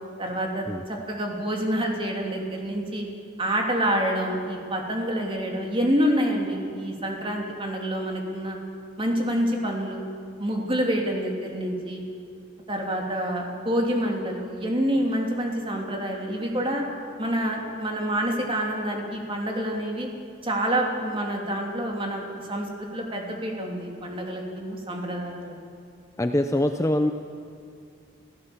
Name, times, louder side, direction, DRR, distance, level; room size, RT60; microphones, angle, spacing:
voice 1, 0.2-3.1 3.4-8.6 9.0-10.0 10.4-12.0 12.7-16.8 17.2-20.1 20.4-25.5, equal, 25° right, 0 dB, 3.1 m, -27 dB
voice 2, 26.2-27.1, left 1 dB, 15° left, 6 dB, 0.6 m, -23 dB
28.0 x 15.5 x 7.3 m, 2.5 s
head